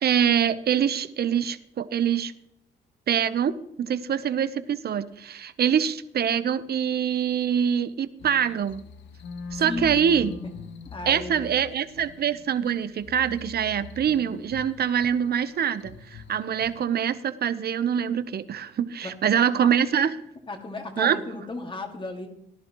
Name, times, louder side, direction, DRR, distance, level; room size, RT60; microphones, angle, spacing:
voice 1, 0.0-2.3 3.1-8.8 9.5-10.3 11.1-20.1 21.0-21.2, right 8 dB, 55° right, 13 dB, 0.9 m, -24 dB
sound 1, 8.2-16.8, left 5 dB, 70° left, 1.0 m, -42 dB
voice 2, 10.9-11.3 20.5-22.3, left 2 dB, 25° left, 4 dB, 2.2 m, -34 dB
18.0 x 11.0 x 3.1 m, 0.79 s
cardioid pair, 90°, 20 cm